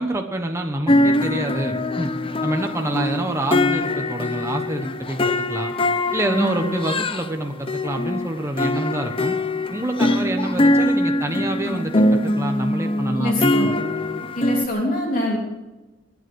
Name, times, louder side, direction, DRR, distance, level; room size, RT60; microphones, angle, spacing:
voice 1, 0.0-2.1 2.4-5.7 6.1-9.4 9.7-13.8, right 1 dB, 15° right, 4 dB, 1.1 m, -27 dB
sound 1, 0.9-7.3 7.7-14.7, left 1 dB, 30° left, 0.8 m, -22 dB
voice 2, 6.3-6.7 13.2-13.7 14.3-15.4, equal, 45° left, -1 dB, 3.3 m, -24 dB
23.0 x 9.5 x 6.3 m, 1.1 s
head